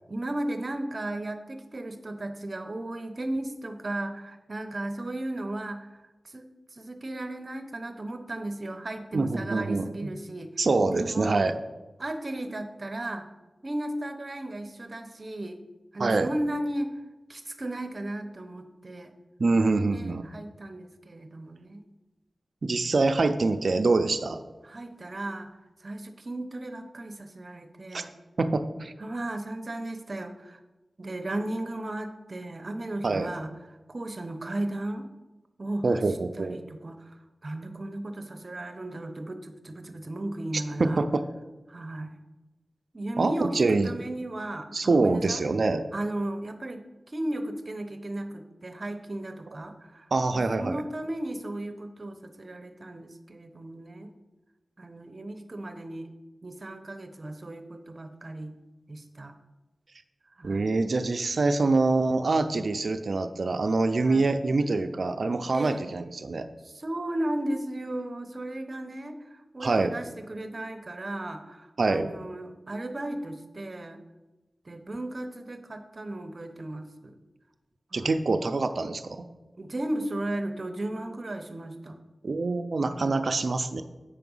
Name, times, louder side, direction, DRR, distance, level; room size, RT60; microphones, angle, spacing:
voice 1, 0.1-5.9 6.2-10.5 10.9-11.4 12.0-13.3 13.6-15.6 15.9-16.9 17.3-19.1 19.9-21.8 24.6-25.5 25.8-28.1 29.0-30.6 31.0-33.5 33.9-35.1 35.6-36.0 36.4-37.2 37.4-41.0 41.7-42.2 42.9-45.4 45.9-54.1 54.8-56.1 56.4-58.5 58.9-59.3 60.4-60.7 64.0-64.3 65.5-65.9 66.6-74.0 74.7-77.1 77.9-78.1 79.6-82.0 82.9-83.1, right 1 dB, 45° right, 7 dB, 0.8 m, -35 dB
voice 2, 9.1-9.9 10.6-11.6 16.0-16.3 19.4-20.3 22.6-24.4 27.9-28.0 28.4-28.9 33.0-33.3 35.8-36.6 40.5-41.3 43.2-43.9 44.7-45.8 50.1-50.8 60.4-66.5 69.6-70.0 71.8-72.1 77.9-79.3 82.2-83.8, right 3 dB, 65° right, 8 dB, 0.5 m, -25 dB
8.4 x 5.9 x 5.5 m, 1.1 s
wide cardioid pair, 65°, 0 cm